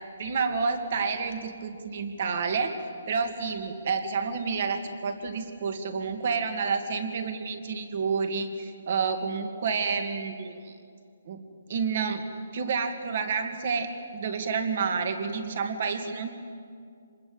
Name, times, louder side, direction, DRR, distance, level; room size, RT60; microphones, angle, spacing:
voice 1, 0.2-2.7 3.1-10.7 11.3-11.4 11.7-12.3 12.5-16.3, right 5 dB, 40° right, 7 dB, 2.3 m, -29 dB
26.0 x 20.5 x 8.9 m, 2.2 s
hypercardioid pair, 170°, 0 cm